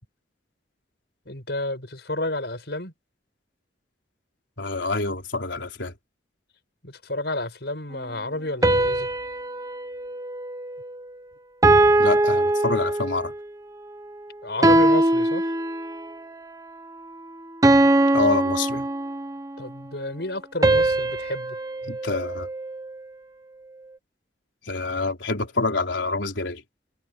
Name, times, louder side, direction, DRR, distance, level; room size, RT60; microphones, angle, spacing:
voice 1, 1.3-2.9 6.8-9.1 14.4-15.5 19.6-21.6, left 2 dB, 65° left, 6.4 m, -31 dB
voice 2, 4.6-5.9 12.0-13.3 18.1-18.9 21.8-22.5 24.6-26.6, left 3 dB, 80° left, 4.0 m, -27 dB
sound 1, 8.6-11.1 11.6-13.4 14.6-16.2 17.6-19.5 20.6-23.0, right 2 dB, 20° right, 1.0 m, -21 dB
head